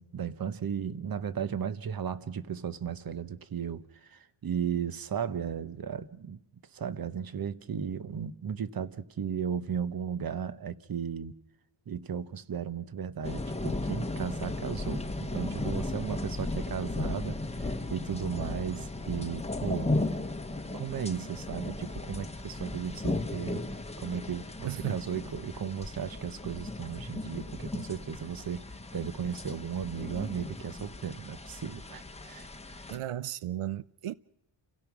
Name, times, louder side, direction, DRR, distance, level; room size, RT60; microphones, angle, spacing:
voice 1, 0.0-6.4 6.7-11.3 11.9-19.9 20.7-23.6 24.0-28.6 28.9-32.5, right 7 dB, 45° right, 1.0 m, -35 dB
sound 1, 13.2-33.0, left 2 dB, 15° left, 1.0 m, -36 dB
voice 2, 24.6-25.0 32.9-34.1, right 13 dB, 90° right, 0.7 m, -34 dB
29.5 x 16.5 x 6.1 m
wide cardioid pair, 160°, 50 cm